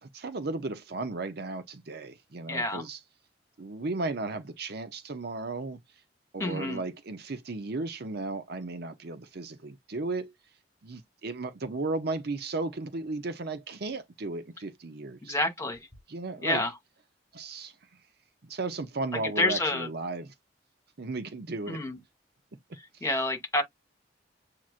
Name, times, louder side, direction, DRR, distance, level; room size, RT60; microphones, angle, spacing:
voice 1, 0.0-3.0 3.6-5.8 6.3-10.3 10.8-15.4 16.1-16.7 17.3-17.7 18.4-20.3 21.0-21.8 22.9-23.0, right 3 dB, 60° right, 0.8 m, -35 dB
voice 2, 2.5-2.8 6.4-6.8 15.2-15.9 16.4-16.7 19.1-19.9 21.7-22.0 23.0-23.6, left 2 dB, 15° left, 2.1 m, -28 dB
7.5 x 2.9 x 2.5 m
head